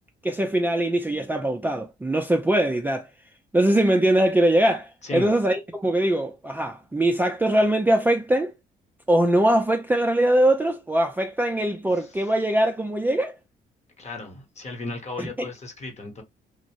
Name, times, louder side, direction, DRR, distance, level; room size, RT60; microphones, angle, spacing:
voice 1, 0.2-3.1 3.5-8.5 9.1-13.3 15.2-15.5, right 1 dB, 10° right, 0.4 m, -22 dB
voice 2, 14.0-16.2, left 2 dB, 35° left, 1.0 m, -35 dB
2.5 x 2.0 x 2.9 m
cardioid pair, 90°, 20 cm